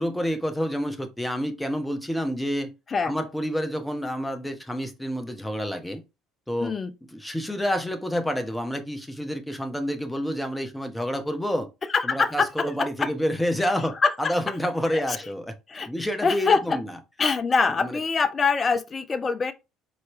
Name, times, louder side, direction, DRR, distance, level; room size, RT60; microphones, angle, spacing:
voice 1, 0.0-2.7 3.0-6.0 6.5-6.7 7.1-11.7 12.0-15.5 15.9-16.9 17.8-18.0, equal, 5° left, 0.9 m, -28 dB
voice 2, 6.6-6.9 11.9-13.1 14.0-14.3 14.9-15.0 15.7-15.9 16.2-16.8 17.2-19.5, left 5 dB, 30° left, 0.6 m, -24 dB
4.5 x 3.1 x 3.0 m
figure-of-eight pair, 55°, 0 cm